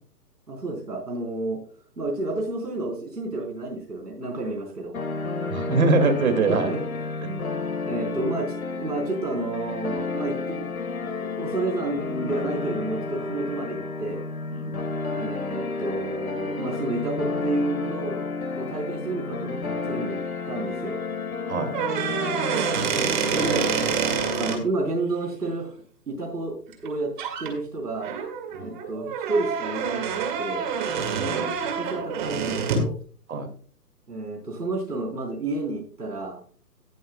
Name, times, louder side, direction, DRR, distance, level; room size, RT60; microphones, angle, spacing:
voice 1, 0.5-1.6 2.0-4.9 5.3-5.5 6.5-6.8 7.5-10.7 11.2-14.2 15.1-18.2 18.6-20.2 20.5-21.0 22.9-23.7 24.3-25.7 26.1-26.5 26.8-27.1 27.4-28.1 28.6-30.1 30.4-30.7 31.6-32.9 34.1-36.4, right 2 dB, 75° right, -1 dB, 3.8 m, -30 dB
sound 1, 4.9-24.5, left 4 dB, 60° left, 1.7 m, -31 dB
voice 2, 5.5-6.7 7.2-7.3 14.5-14.8 21.5-21.7 28.5-28.7 31.1-31.5 33.3-33.5, right 3 dB, 55° right, 9 dB, 2.3 m, -23 dB
sound 2, 21.7-24.6 26.7-26.9 27.2-27.5 28.0-32.9, right 6 dB, 30° right, 2.0 m, -27 dB
18.5 x 7.7 x 2.2 m, 0.43 s
figure-of-eight pair, 140°, 49 cm